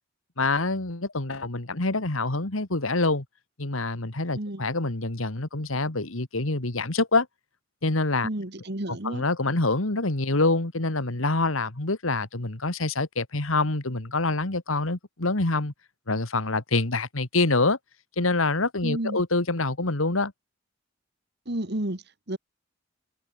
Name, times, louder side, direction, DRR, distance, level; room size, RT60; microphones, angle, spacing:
voice 1, 0.4-3.2 3.6-7.3 7.8-8.3 8.9-15.7 16.1-17.8 18.2-20.3, left 3 dB, 80° left, 2.2 m, -26 dB
voice 2, 8.2-9.2 18.8-19.2 21.5-22.4, right 1 dB, 55° right, 2.3 m, -31 dB
head